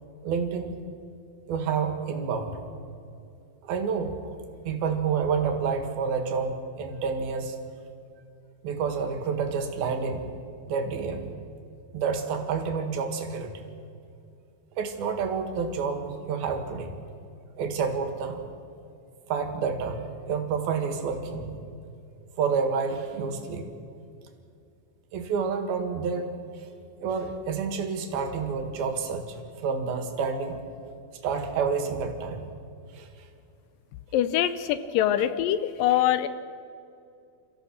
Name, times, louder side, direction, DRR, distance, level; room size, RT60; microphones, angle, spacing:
voice 1, 0.2-0.7 1.5-2.6 3.6-4.4 4.7-7.6 8.6-10.3 10.7-11.3 11.9-13.7 14.8-17.0 17.6-18.4 19.3-21.6 22.4-23.7 25.1-26.3 26.6-26.7 27.0-30.6 31.2-32.5 32.9-33.1 35.1-35.3, right 5 dB, 75° right, 6 dB, 3.5 m, -29 dB
voice 2, 34.1-36.3, left 11 dB, 75° left, 13 dB, 2.2 m, -24 dB
29.0 x 14.5 x 6.5 m, 2.5 s
omnidirectional pair, 4.3 m